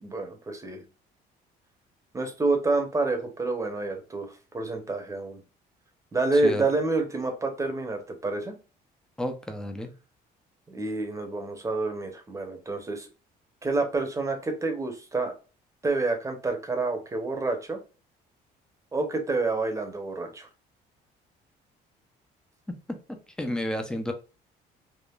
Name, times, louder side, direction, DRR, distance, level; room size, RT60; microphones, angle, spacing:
voice 1, 0.0-0.8 2.1-5.4 6.1-8.5 10.7-13.1 13.6-15.3 15.8-17.8 18.9-20.5, right 3 dB, 20° right, 4 dB, 0.9 m, -28 dB
voice 2, 6.3-6.6 9.2-9.9 23.4-24.1, left 1 dB, 5° left, 5 dB, 0.6 m, -31 dB
3.5 x 2.4 x 2.3 m, 0.33 s
cardioid pair, 110°, 17 cm